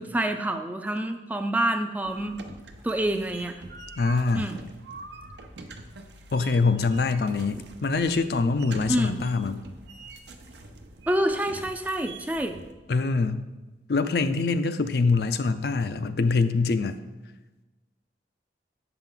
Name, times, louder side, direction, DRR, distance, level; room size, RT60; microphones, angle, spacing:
voice 1, 0.0-2.4 2.8-3.5 4.3-4.6 8.9-9.2 11.1-12.6, right 1 dB, 10° right, 6 dB, 0.3 m, -27 dB
sound 1, 2.0-12.7, right 3 dB, 80° right, 0.7 m, -44 dB
voice 2, 4.0-4.5 6.3-9.6 12.9-13.4 13.9-17.0, left 4 dB, 65° left, 10 dB, 0.4 m, -24 dB
8.0 x 5.9 x 3.8 m, 1.1 s
head